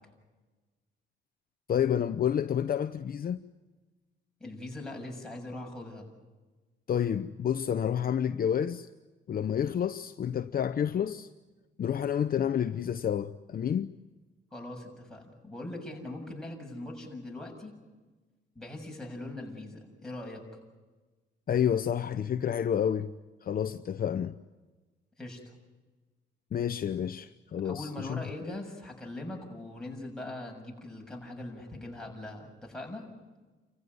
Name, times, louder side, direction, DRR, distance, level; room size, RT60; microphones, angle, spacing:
voice 1, 1.7-3.4 6.9-8.9 9.3-11.3 11.8-13.9 21.5-23.1 23.4-24.3 26.5-28.2, left 9 dB, 50° left, 0.7 m, -29 dB
voice 2, 4.4-6.1 14.5-17.8 18.6-20.4 25.2-25.5 27.6-33.0, left 1 dB, 5° left, 7.1 m, -41 dB
29.5 x 15.0 x 9.6 m
cardioid pair, 90°, 20 cm